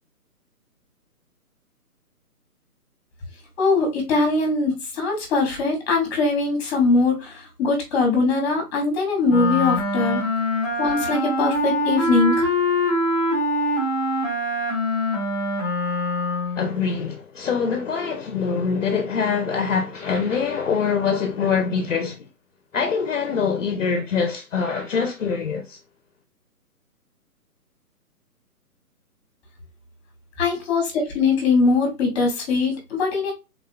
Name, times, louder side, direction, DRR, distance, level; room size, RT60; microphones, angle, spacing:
voice 1, 3.6-10.2 10.8-12.5 30.4-33.3, left 3 dB, 20° left, 1.5 m, -21 dB
Wind instrument woodwind instrument, 9.3-16.7, left 1 dB, 5° left, 1.2 m, -23 dB
voice 2, 16.6-22.2 22.7-25.8, left 6 dB, 55° left, 0.7 m, -24 dB
3.7 x 3.6 x 2.2 m
hypercardioid pair, 155°, 46 cm